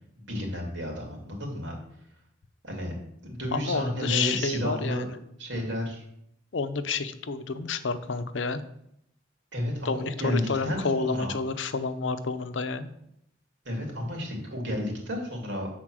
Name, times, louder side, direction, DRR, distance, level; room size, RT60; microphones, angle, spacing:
voice 1, 0.2-1.7 2.6-2.9 3.2-5.1 5.4-6.0 9.5-11.3 13.6-15.8, equal, 75° right, 0 dB, 2.6 m, -31 dB
voice 2, 3.5-5.1 6.5-8.6 9.8-12.9, left 4 dB, 90° left, 11 dB, 0.6 m, -29 dB
7.6 x 4.3 x 6.1 m, 0.75 s
head